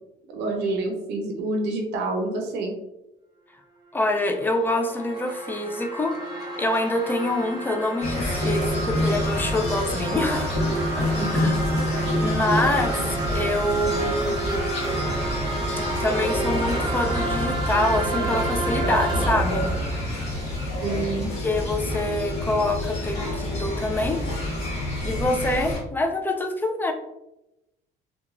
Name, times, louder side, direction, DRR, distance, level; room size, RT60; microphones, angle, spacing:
voice 1, 0.3-2.7 11.2-11.5 20.8-21.3, right 2 dB, 85° right, 2 dB, 0.6 m, -27 dB
voice 2, 3.9-6.2 6.6-10.6 11.0-11.1 11.3-11.6 11.9-13.0 13.3-14.6 16.0-19.7 21.4-24.2 25.0-26.9, left 1 dB, 10° left, 5 dB, 0.4 m, -26 dB
sound 1, 4.1-21.0, right 2 dB, 25° right, 0.9 m, -30 dB
sound 2, 8.0-25.8, left 1 dB, 40° left, 1.1 m, -28 dB
2.9 x 2.3 x 2.4 m, 0.89 s
cardioid pair, 110°, 17 cm